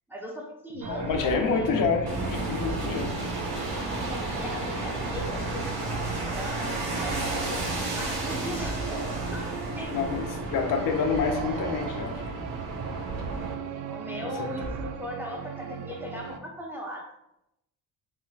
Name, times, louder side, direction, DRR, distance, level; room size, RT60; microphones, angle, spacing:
voice 1, 0.1-1.8 4.0-5.6 6.3-7.7 8.0-10.0 13.9-17.1, equal, 5° right, -1 dB, 0.7 m, -39 dB
sound 1, 0.8-16.4, right 5 dB, 55° right, 0.5 m, -36 dB
voice 2, 0.9-3.2 9.9-12.4 14.4-14.7, left 5 dB, 60° left, 4 dB, 0.6 m, -28 dB
sound 2, 2.1-13.5, right 2 dB, 75° right, 1.4 m, -33 dB
5.5 x 2.0 x 2.4 m, 0.83 s
cardioid pair, 90°, 38 cm